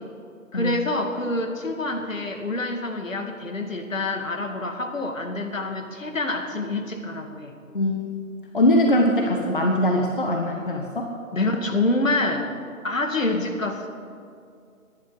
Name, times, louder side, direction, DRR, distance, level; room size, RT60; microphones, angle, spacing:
voice 1, 0.5-7.5 11.3-12.5 12.8-13.9, left 2 dB, 65° left, 5 dB, 2.2 m, -26 dB
voice 2, 8.5-11.1, left 1 dB, 35° left, 2 dB, 1.2 m, -21 dB
26.5 x 11.0 x 4.0 m, 2.3 s
figure-of-eight pair, 160°, 43 cm